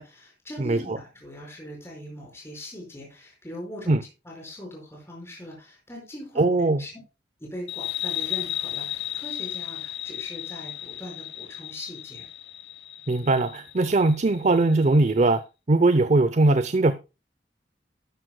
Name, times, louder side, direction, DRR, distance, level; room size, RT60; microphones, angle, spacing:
voice 1, 0.0-4.0 4.2-6.5 6.8-6.9 7.4-12.3, left 1 dB, 15° left, 5.2 m, -41 dB
voice 2, 6.4-6.8 13.1-15.4 15.7-16.9, right 2 dB, 40° right, 0.7 m, -20 dB
sound 1, 7.7-14.9, left 12 dB, 70° left, 1.1 m, -34 dB
12.5 x 12.5 x 2.3 m
head